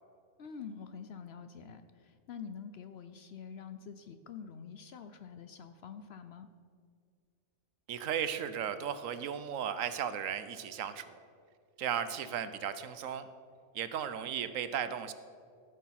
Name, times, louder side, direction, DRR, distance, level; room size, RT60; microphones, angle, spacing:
voice 1, 0.4-6.5, left 6 dB, 60° left, 10 dB, 0.7 m, -46 dB
voice 2, 7.9-11.2 11.8-13.2 13.7-15.1, right 8 dB, 75° right, 11 dB, 1.1 m, -35 dB
14.5 x 6.6 x 5.7 m, 2.2 s
omnidirectional pair, 1.4 m